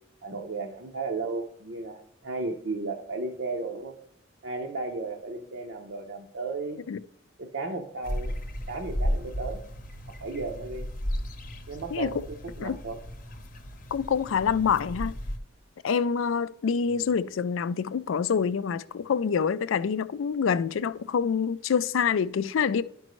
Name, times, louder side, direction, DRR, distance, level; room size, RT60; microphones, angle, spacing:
voice 1, 0.2-3.9 4.4-6.8 7.4-8.4 8.7-9.6 10.1-10.9 11.7-13.0 16.9-17.1, right 3 dB, 65° right, 0.7 m, -34 dB
sound 1, 8.0-15.4, equal, 45° left, 0.8 m, -34 dB
voice 2, 13.9-15.1 15.8-22.8, left 6 dB, 85° left, 0.4 m, -26 dB
11.0 x 5.2 x 3.0 m
head